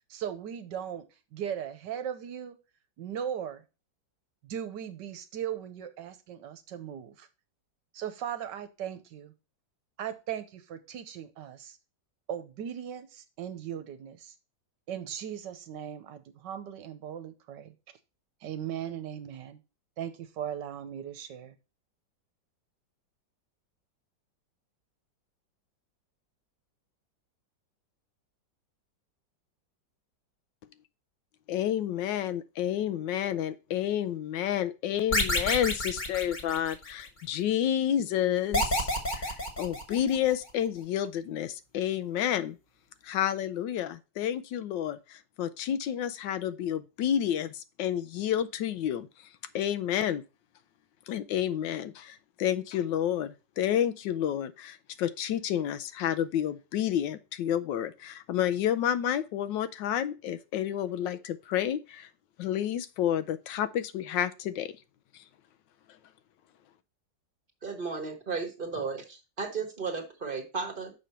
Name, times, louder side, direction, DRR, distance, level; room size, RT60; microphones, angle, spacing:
voice 1, 0.1-2.6 3.0-3.6 4.4-7.3 7.9-9.3 10.0-11.8 12.3-14.3 14.9-17.7 18.4-19.6 20.0-21.6, right 9 dB, 75° right, 1.4 m, -38 dB
voice 2, 31.5-42.6 43.0-49.1 49.5-50.2 51.1-62.1 62.4-64.7, left 10 dB, 80° left, 1.3 m, -30 dB
sound 1, 35.1-37.1 38.5-40.3, left 1 dB, 30° left, 1.4 m, -29 dB
voice 3, 67.6-70.9, right 5 dB, 30° right, 1.3 m, -34 dB
6.4 x 5.4 x 4.3 m
omnidirectional pair, 2.0 m